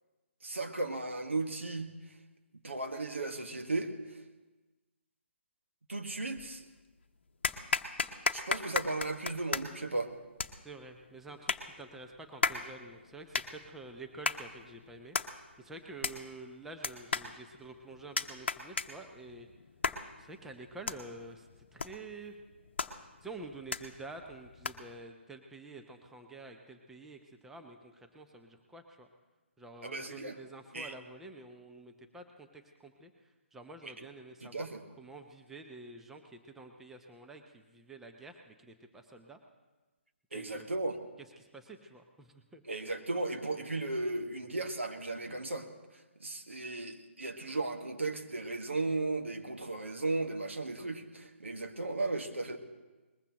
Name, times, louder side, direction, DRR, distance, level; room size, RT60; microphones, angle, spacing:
voice 1, 0.4-1.9 2.6-4.2 5.9-6.6 8.3-10.1 29.8-30.4 30.7-30.9 33.8-34.1 34.4-34.8 40.3-41.0 42.7-45.7 46.2-52.6, right 2 dB, 75° right, 5 dB, 1.6 m, -35 dB
sound 1, 6.4-6.9 7.4-25.0, left 4 dB, 60° left, 0.9 m, -37 dB
voice 2, 10.6-19.5 20.2-22.4 23.2-29.1 29.6-39.4 40.3-40.7 41.2-42.6, right 2 dB, 5° right, 4 dB, 0.8 m, -49 dB
21.5 x 20.5 x 3.0 m, 1.2 s
figure-of-eight pair, 140°, 7 cm